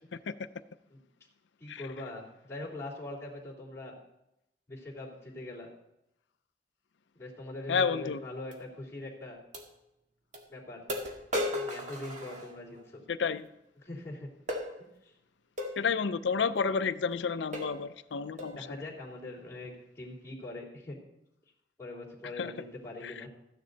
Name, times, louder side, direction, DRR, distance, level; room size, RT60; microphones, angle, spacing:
voice 1, 1.6-3.9 4.7-5.7 7.1-9.4 10.5-10.8 11.5-13.0 13.8-14.3 15.0-15.1 18.4-21.0 21.8-23.3, left 2 dB, 15° left, -7 dB, 3.2 m, -42 dB
voice 2, 7.7-8.2 13.1-13.5 15.8-18.8 22.4-22.5 23.0-23.1, left 5 dB, 80° left, 12 dB, 0.5 m, -30 dB
sound 1, 8.5-8.6 9.5-9.7 10.3-10.4 10.9-12.8 14.5-14.7 15.6-15.8 16.6-16.7 17.1-17.2 17.5-17.8 18.4-18.6, left 1 dB, 45° right, 1.8 m, -35 dB
14.0 x 9.9 x 4.0 m, 0.85 s
head